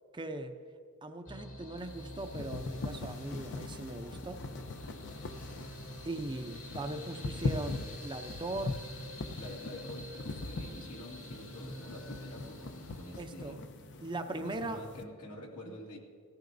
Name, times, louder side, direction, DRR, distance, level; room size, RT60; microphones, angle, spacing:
voice 1, 0.1-0.5 1.0-4.4 6.0-8.8 13.2-13.6 14.0-14.8 15.6-15.7, right 2 dB, 20° right, 6 dB, 0.6 m, -39 dB
sound 1, 1.2-13.2, left 1 dB, 70° left, 2.4 m, -48 dB
sound 2, 1.8-15.0, left 2 dB, 55° left, 0.6 m, -41 dB
voice 2, 9.4-13.7 14.4-16.0, left 1 dB, 90° left, -1 dB, 2.1 m, -47 dB
20.0 x 14.5 x 2.7 m, 2.1 s
head